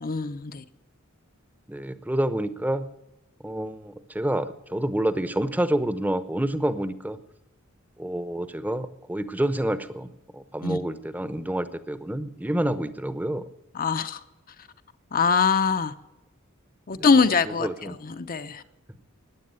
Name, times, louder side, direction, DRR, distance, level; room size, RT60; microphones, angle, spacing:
voice 1, 0.0-0.6 10.6-10.8 13.7-14.2 15.1-15.9 16.9-18.6, left 5 dB, 45° left, 10 dB, 0.8 m, -23 dB
voice 2, 1.7-2.9 3.4-7.2 8.0-13.5 16.9-17.1 17.5-18.0, right 1 dB, 10° right, 13 dB, 0.8 m, -28 dB
15.0 x 9.9 x 9.6 m, 0.97 s
head